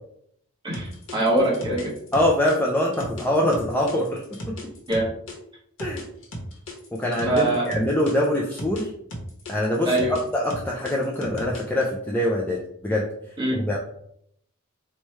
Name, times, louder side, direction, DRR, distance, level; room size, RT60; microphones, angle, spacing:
voice 1, 0.6-1.9 4.9-5.1 7.2-7.7 9.8-10.2 13.4-13.6, right 1 dB, 20° right, -5 dB, 1.0 m, -23 dB
sound 1, 0.7-5.4 5.8-8.8 9.1-11.8, equal, 65° left, 0.9 m, -36 dB
voice 2, 2.1-4.6 5.8-6.0 6.9-8.9 9.5-13.1 13.5-13.8, left 1 dB, 10° left, -3 dB, 0.3 m, -24 dB
3.1 x 2.2 x 4.2 m, 0.70 s
head